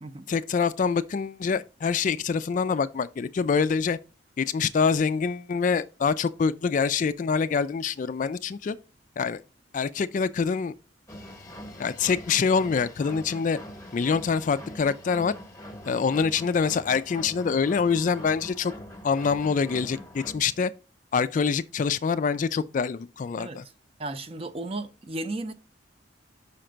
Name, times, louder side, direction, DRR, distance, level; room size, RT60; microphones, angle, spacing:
voice 1, 0.3-4.0 4.4-8.8 9.2-9.4 9.7-10.7 11.8-13.6 13.9-15.3 15.9-18.7 19.0-20.7 21.1-23.6, left 5 dB, 40° left, 0.3 m, -25 dB
sound 1, 11.1-20.6, left 1 dB, 15° left, 1.0 m, -43 dB
voice 2, 24.0-25.5, right 2 dB, 30° right, 0.6 m, -34 dB
5.7 x 4.4 x 5.1 m
head